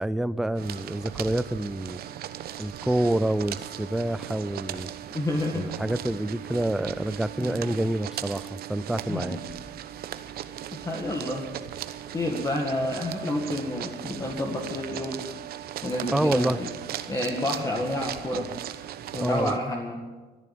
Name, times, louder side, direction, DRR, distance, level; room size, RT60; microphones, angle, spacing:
voice 1, 0.0-2.0 2.6-4.9 5.5-9.4 16.1-16.6 19.2-19.5, right 1 dB, ahead, 15 dB, 0.4 m, -27 dB
sound 1, 0.5-19.6, right 11 dB, 65° right, 0.9 m, -38 dB
voice 2, 5.1-5.7 7.4-7.6 9.1-9.4 10.8-11.4 12.1-15.2 15.8-16.7 17.1-18.5 19.1-20.0, left 1 dB, 20° left, 0 dB, 1.9 m, -29 dB
14.5 x 10.5 x 8.5 m, 1.3 s
cardioid pair, 110°, 17 cm